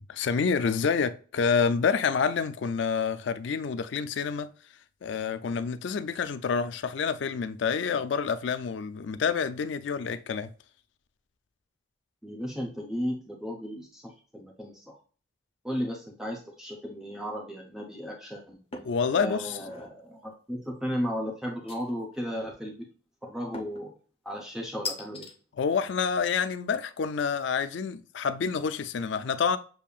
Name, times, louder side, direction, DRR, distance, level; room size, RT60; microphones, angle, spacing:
voice 1, 0.0-4.5 5.0-10.5 18.8-19.6 25.5-29.6, left 6 dB, 70° left, 0.4 m, -28 dB
voice 2, 12.2-15.0 15.6-18.6 19.1-22.9 23.2-23.9 24.2-25.3, equal, 5° right, 0.7 m, -35 dB
sound 1, 18.7-19.0 19.5-19.9 21.7-22.2 23.5-23.9 24.8-25.3, left 4 dB, 30° left, 0.7 m, -38 dB
6.9 x 2.7 x 2.3 m
head